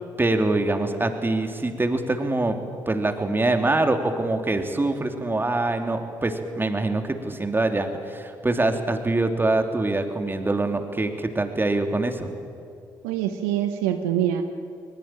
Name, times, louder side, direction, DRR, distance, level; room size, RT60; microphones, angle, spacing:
voice 1, 0.2-2.6 2.9-12.3, right 2 dB, 20° right, 5 dB, 3.0 m, -24 dB
voice 2, 13.0-14.4, right 11 dB, 80° right, 7 dB, 1.1 m, -24 dB
21.0 x 21.0 x 9.0 m, 2.4 s
hypercardioid pair, 50°, 10 cm